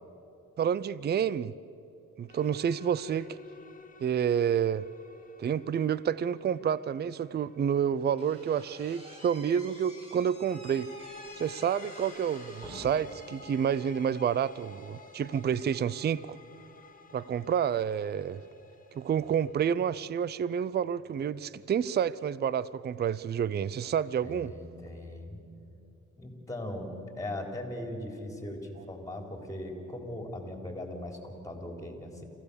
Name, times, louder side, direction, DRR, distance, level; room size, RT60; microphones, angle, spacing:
voice 1, 0.6-1.5 2.2-3.4 4.0-4.8 5.4-10.9 11.4-16.4 17.1-18.4 19.0-24.5, right 8 dB, 35° right, 19 dB, 0.5 m, -29 dB
sound 1, 2.3-8.8 10.3-20.2, left 4 dB, 25° left, 1.5 m, -52 dB
Slam / Squeak, 8.2-13.2, equal, 20° right, 6.5 m, -49 dB
voice 2, 24.2-25.4 26.2-32.2, left 1 dB, 10° left, 3 dB, 3.9 m, -39 dB
27.0 x 15.5 x 6.9 m, 2.8 s
cardioid pair, 90°, 30 cm